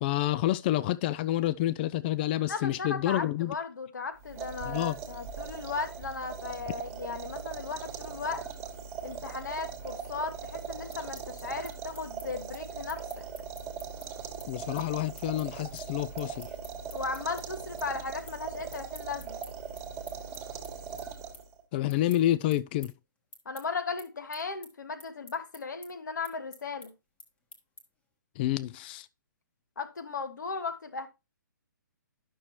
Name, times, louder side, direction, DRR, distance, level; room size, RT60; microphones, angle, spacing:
voice 1, 0.0-3.5 4.6-5.0 14.5-16.5 21.7-22.9 28.4-29.1, left 14 dB, 30° left, 0.3 m, -28 dB
voice 2, 2.5-8.4 9.0-13.3 16.9-19.4 23.4-26.9 29.8-31.1, left 4 dB, 65° left, 1.3 m, -36 dB
sound 1, 4.2-21.6, right 6 dB, 25° right, 1.4 m, -40 dB
sound 2, 10.9-17.4 17.8-18.4 18.7-28.1, left 2 dB, 10° left, 1.1 m, -51 dB
11.0 x 6.2 x 2.9 m
figure-of-eight pair, 125°, 10 cm